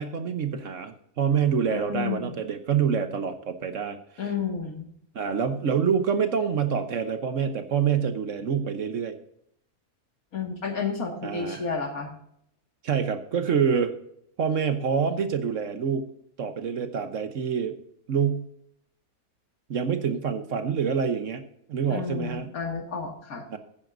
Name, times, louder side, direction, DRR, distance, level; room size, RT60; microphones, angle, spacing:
voice 1, 0.0-4.0 5.1-9.2 11.2-11.6 12.8-13.9 14.4-16.1 16.4-17.8 18.1-18.5 19.7-21.4 21.7-22.5 23.5-23.6, right 7 dB, 60° right, 9 dB, 1.2 m, -26 dB
voice 2, 1.7-2.4 4.2-4.9 10.3-12.1 21.9-23.4, left 5 dB, 70° left, 3 dB, 2.4 m, -31 dB
15.0 x 10.0 x 2.6 m, 0.71 s
omnidirectional pair, 1.6 m